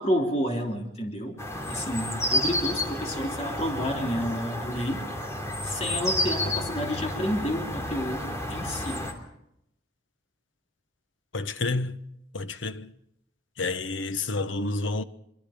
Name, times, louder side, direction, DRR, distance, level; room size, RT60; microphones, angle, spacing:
voice 1, 0.0-1.4 1.7-5.1 5.6-9.0, equal, 35° left, 3.3 m, -30 dB
sound 1, 1.4-9.1, left 1 dB, 15° left, 3.1 m, -31 dB
voice 2, 11.3-12.0 12.3-12.9 13.6-15.0, left 3 dB, 85° left, 1.2 m, -29 dB
25.0 x 24.5 x 5.1 m
head